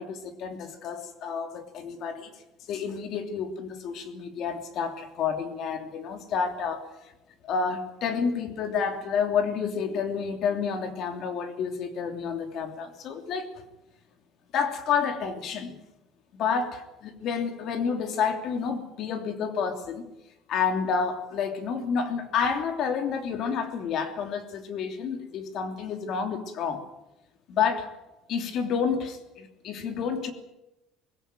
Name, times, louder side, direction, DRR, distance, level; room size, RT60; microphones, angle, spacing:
voice 1, 0.0-2.3 2.7-6.8 7.4-13.5 14.5-15.7 16.3-20.0 20.5-26.8 27.5-27.9 28.3-30.3, left 6 dB, 50° left, 7 dB, 3.0 m, -29 dB
21.0 x 16.5 x 9.1 m, 0.94 s
cardioid pair, 160°, 0 cm